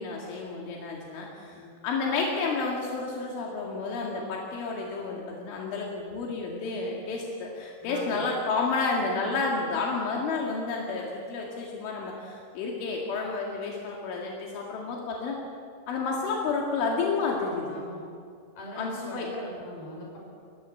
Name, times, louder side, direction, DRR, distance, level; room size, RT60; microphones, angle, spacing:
voice 1, 0.0-15.4 15.9-17.6 18.8-19.3, left 4 dB, 85° left, -2 dB, 4.6 m, -30 dB
voice 2, 7.8-8.3 17.7-18.0 18.6-20.2, equal, 50° left, -2 dB, 7.7 m, -41 dB
28.5 x 15.0 x 8.2 m, 2.4 s
omnidirectional pair, 5.4 m